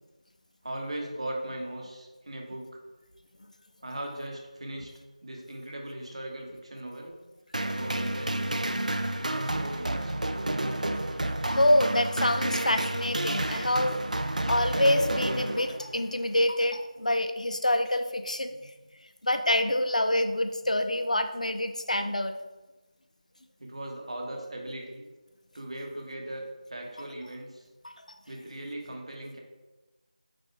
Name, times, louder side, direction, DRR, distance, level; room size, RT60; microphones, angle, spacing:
voice 1, 0.6-2.8 3.8-4.9 5.2-7.2 7.6-10.2 23.6-25.1 25.5-27.7 28.3-29.4, right 1 dB, 50° right, 0 dB, 1.4 m, -39 dB
sound 1, 7.5-16.0, right 1 dB, 70° right, 0.5 m, -30 dB
voice 2, 11.5-14.0 14.5-18.5 19.2-22.4 27.8-27.9, left 1 dB, 65° left, 7 dB, 0.6 m, -26 dB
8.4 x 6.0 x 2.3 m, 1.2 s
figure-of-eight pair, 170°, 4 cm